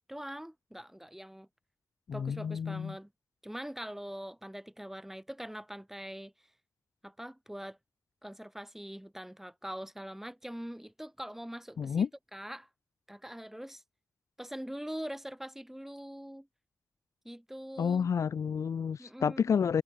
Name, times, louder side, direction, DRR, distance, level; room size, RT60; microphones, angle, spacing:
voice 1, 0.1-1.5 2.1-3.1 3.4-6.3 7.0-7.8 8.2-12.7 13.1-13.8 14.4-16.5 17.2-18.1 19.0-19.6, equal, 5° right, 4.5 m, -43 dB
voice 2, 2.1-3.0 11.8-12.1 17.8-19.8, left 7 dB, 70° left, 0.3 m, -30 dB
cardioid pair, 55°, 5 cm